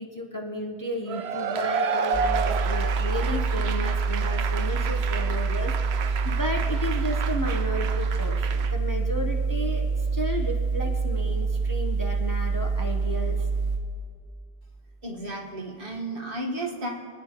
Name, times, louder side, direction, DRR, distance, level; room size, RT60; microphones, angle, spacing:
voice 1, 0.0-13.5, left 1 dB, 20° left, 1 dB, 0.8 m, -33 dB
Cheering / Applause / Crowd, 1.1-8.7, right 6 dB, 90° right, 0.9 m, -31 dB
sound 1, 2.1-13.8, right 4 dB, 35° right, 1.6 m, -26 dB
voice 2, 15.0-16.9, right 1 dB, 60° right, -2 dB, 1.7 m, -33 dB
26.0 x 9.6 x 3.0 m, 2.2 s
omnidirectional pair, 1.0 m